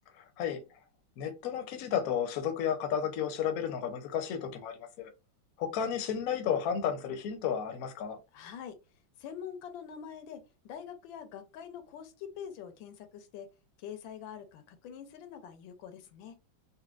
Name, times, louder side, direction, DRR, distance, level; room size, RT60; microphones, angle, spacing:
voice 1, 0.2-0.6 1.2-5.1 5.6-8.2, left 8 dB, 65° left, 0.9 m, -32 dB
voice 2, 8.3-8.8 9.2-13.5 13.8-16.4, left 8 dB, 85° left, 1.4 m, -45 dB
4.2 x 2.1 x 2.3 m
omnidirectional pair, 2.1 m